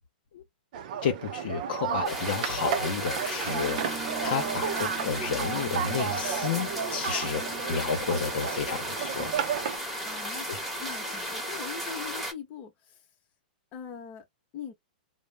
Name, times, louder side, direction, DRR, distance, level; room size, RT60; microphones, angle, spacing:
sound 1, 0.7-9.8, right 8 dB, 60° right, 0.5 m, -33 dB
voice 1, 1.0-7.4 7.7-9.3 10.5-10.6, left 7 dB, 65° left, 0.8 m, -31 dB
sound 2, 2.0-12.3, equal, ahead, 1.0 m, -35 dB
sound 3, 3.5-10.4, right 6 dB, 25° right, 1.0 m, -45 dB
voice 2, 7.4-7.8 10.0-13.0 13.7-14.3 14.5-14.7, left 7 dB, 35° left, 0.9 m, -42 dB
2.4 x 2.1 x 3.2 m
hypercardioid pair, 145°, 5 cm